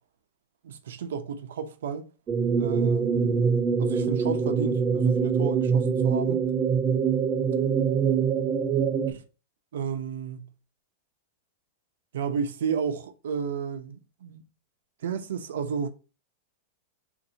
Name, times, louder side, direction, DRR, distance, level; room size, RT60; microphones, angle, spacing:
voice 1, 0.6-2.1 2.6-3.5 3.8-6.4 9.1-9.2 9.7-10.5 12.1-14.4 15.0-15.9, right 6 dB, 85° right, 0.7 m, -32 dB
sound 1, 2.3-9.1, right 6 dB, 20° right, 0.3 m, -24 dB
4.0 x 2.6 x 2.7 m
supercardioid pair, 170°, 0 cm